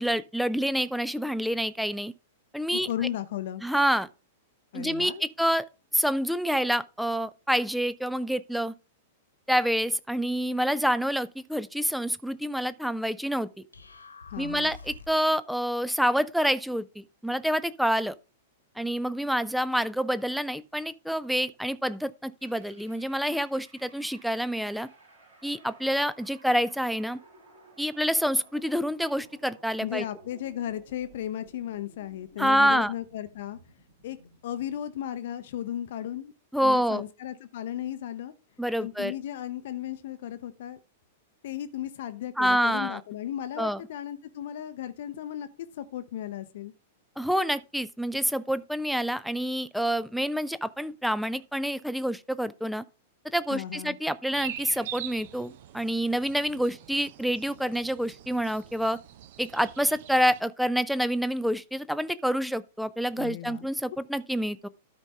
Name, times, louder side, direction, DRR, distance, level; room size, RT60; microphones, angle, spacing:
voice 1, 0.0-2.1 2.5-2.9 3.6-4.1 4.7-5.6 5.9-8.7 9.5-13.5 14.4-18.1 18.8-24.9 25.4-27.2 27.8-30.0 32.4-32.9 36.5-37.0 38.6-39.1 42.4-43.0 43.6-43.8 47.2-52.8 53.2-59.0 59.4-64.7, equal, ahead, 0.4 m, -27 dB
voice 2, 2.7-3.6 4.7-5.2 14.3-14.7 29.8-33.6 34.0-34.2 34.4-36.3 36.6-38.3 38.8-40.8 41.4-46.7 53.5-54.0 63.2-63.7, left 11 dB, 55° left, 0.6 m, -35 dB
sound 1, 13.7-15.3, left 4 dB, 80° left, 1.3 m, -46 dB
sound 2, 22.4-34.5, right 2 dB, 75° right, 5.7 m, -56 dB
sound 3, 54.3-60.4, right 11 dB, 50° right, 0.6 m, -43 dB
12.5 x 5.2 x 3.4 m
figure-of-eight pair, 100°, 0 cm